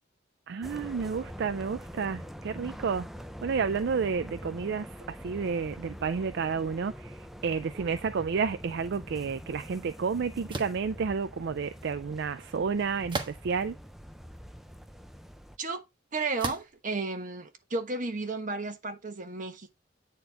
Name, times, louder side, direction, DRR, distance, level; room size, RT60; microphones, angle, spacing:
voice 1, 0.5-3.1 3.4-13.7, right 5 dB, 65° right, 0.4 m, -31 dB
sound 1, 0.6-15.6, equal, ahead, 0.5 m, -44 dB
sound 2, 10.5-10.8 13.1-13.7 14.4-14.5 16.4-16.8, right 3 dB, 25° right, 1.3 m, -35 dB
voice 2, 16.1-19.8, right 3 dB, 45° right, 1.3 m, -33 dB
9.2 x 4.3 x 3.5 m
head